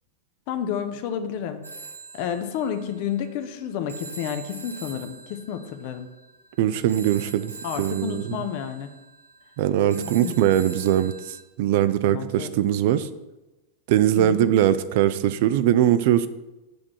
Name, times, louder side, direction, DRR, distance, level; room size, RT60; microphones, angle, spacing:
voice 1, 0.5-1.6 2.1-6.1 7.6-8.9 10.0-10.3 12.1-12.5 14.2-14.5, left 8 dB, 45° left, 8 dB, 0.7 m, -30 dB
Telephone, 1.6-11.4, right 4 dB, 80° right, 0.7 m, -43 dB
voice 2, 6.6-7.5 7.8-8.4 9.6-13.1 13.9-16.3, right 11 dB, 50° right, 13 dB, 0.4 m, -21 dB
7.7 x 3.6 x 6.2 m, 1.1 s
figure-of-eight pair, 90°, 0 cm